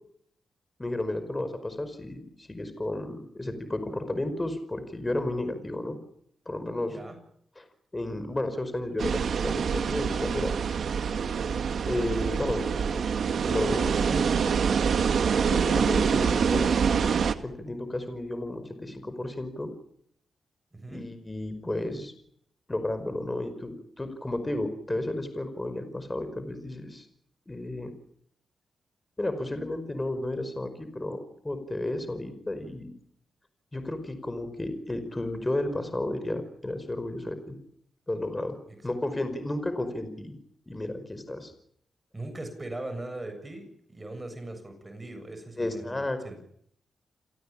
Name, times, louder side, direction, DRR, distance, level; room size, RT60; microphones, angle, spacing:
voice 1, 0.8-6.0 6.4-7.0 7.6-7.7 7.9-10.5 11.2-11.5 11.9-13.0 13.4-14.6 15.3-19.7 20.9-22.1 22.7-27.1 27.5-27.9 29.2-32.9 33.7-37.6 38.1-38.6 38.8-40.3 40.7-41.5 45.6-46.4, left 1 dB, 20° left, 10 dB, 5.1 m, -33 dB
voice 2, 6.8-7.2 20.7-21.1 38.7-38.8 42.1-46.4, right 2 dB, 25° right, 8 dB, 7.4 m, -40 dB
sound 1, 9.0-17.3, right 6 dB, 70° right, 1.7 m, -25 dB
29.0 x 18.0 x 8.8 m, 0.69 s
cardioid pair, 65°, 0 cm